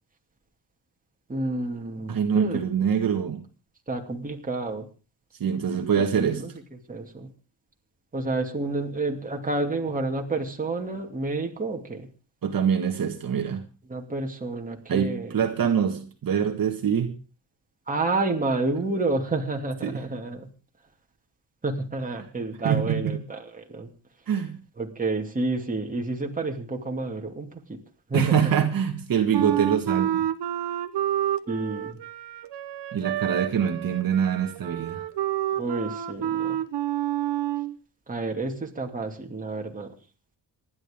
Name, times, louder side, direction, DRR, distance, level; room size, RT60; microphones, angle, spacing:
voice 1, 1.3-2.6 3.9-4.9 6.2-6.5 6.9-7.3 8.1-12.1 13.9-15.3 17.9-20.5 21.6-23.9 24.8-27.8 28.1-28.4 31.5-32.0 35.6-36.6 38.1-39.9, right 2 dB, 20° right, 2 dB, 2.6 m, -29 dB
voice 2, 2.1-3.4 5.4-6.4 12.4-13.6 14.9-17.1 19.8-20.2 22.6-23.2 24.3-24.6 28.1-30.3 32.9-35.0, right 7 dB, 50° right, 4 dB, 1.9 m, -25 dB
Wind instrument woodwind instrument, 29.3-37.7, right 12 dB, 70° right, 1.2 m, -29 dB
27.0 x 11.0 x 3.7 m, 0.35 s
cardioid pair, 145°, 43 cm